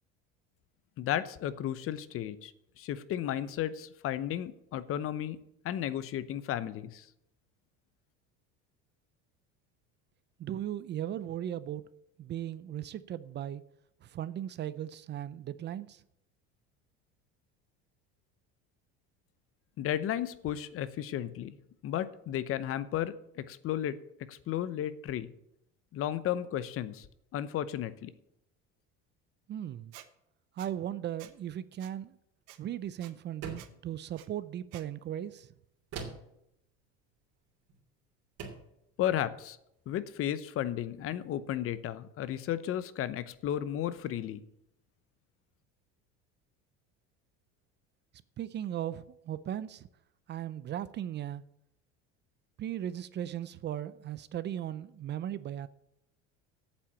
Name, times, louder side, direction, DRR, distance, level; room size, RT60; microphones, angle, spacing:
voice 1, 1.0-2.5 2.8-5.4 5.6-7.0 19.8-21.5 21.8-24.0 24.3-25.3 25.9-27.0 27.3-28.1 39.0-39.6 39.9-44.4, left 11 dB, 45° left, 0.9 m, -34 dB
voice 2, 10.4-11.8 12.2-13.6 14.0-16.0 29.5-29.9 30.6-32.1 32.6-35.5 48.4-49.9 50.3-51.4 52.6-55.7, right 11 dB, 35° right, 0.5 m, -37 dB
Squeak, 29.9-30.1 30.6-30.7 31.2-31.3 31.8-31.9 32.5-32.6 33.0-33.1 33.6-33.7 34.1-34.3 34.7-34.8, right 14 dB, 70° right, 1.2 m, -51 dB
sound 1, 33.4-33.8 35.9-36.4 37.7-37.8 38.4-38.7, right 4 dB, 55° right, 3.0 m, -42 dB
8.7 x 7.4 x 8.7 m
supercardioid pair, 120°, 31 cm